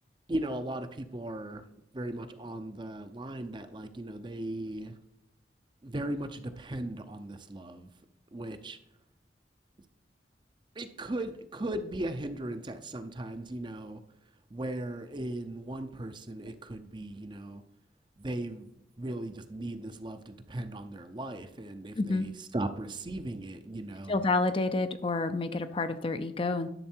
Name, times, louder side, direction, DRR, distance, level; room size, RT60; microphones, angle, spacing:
voice 1, 0.3-1.7 1.9-5.0 5.8-7.9 8.3-8.8 10.8-14.0 14.5-17.6 18.2-24.3, right 1 dB, 25° right, 9 dB, 0.6 m, -37 dB
voice 2, 24.1-26.7, left 3 dB, 30° left, 10 dB, 0.5 m, -29 dB
10.5 x 6.7 x 4.4 m, 0.86 s
head